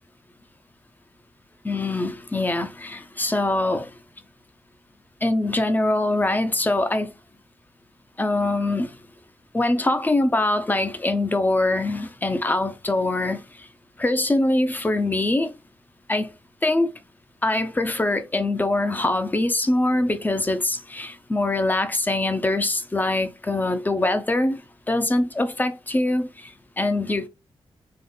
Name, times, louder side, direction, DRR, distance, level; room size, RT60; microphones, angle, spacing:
voice 1, 1.6-3.9 5.2-7.1 8.2-9.0 9.5-13.7 14.0-15.5 16.1-16.3 16.6-16.9 17.4-24.6 24.9-27.3, left 2 dB, 15° left, 0.7 m, -23 dB
3.8 x 3.1 x 3.9 m
wide cardioid pair, 130°, 10 cm